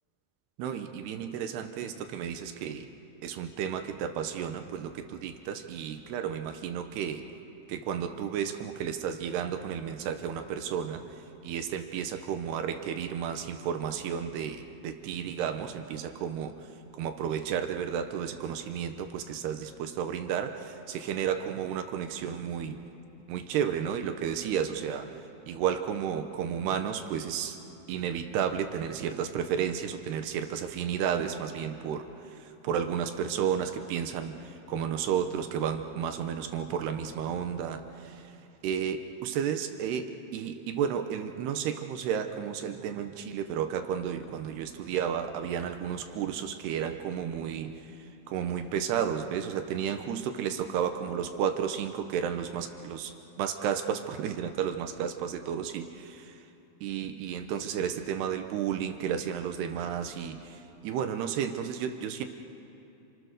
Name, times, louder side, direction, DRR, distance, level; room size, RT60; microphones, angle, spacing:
voice 1, 0.6-2.9 3.2-7.2 7.7-11.0 11.4-22.8 23.3-25.1 25.5-27.6 27.9-38.4 38.6-47.9 48.3-56.4 56.8-62.3, right 8 dB, 70° right, 7 dB, 2.7 m, -32 dB
30.0 x 27.0 x 6.6 m, 2.9 s
omnidirectional pair, 5.5 m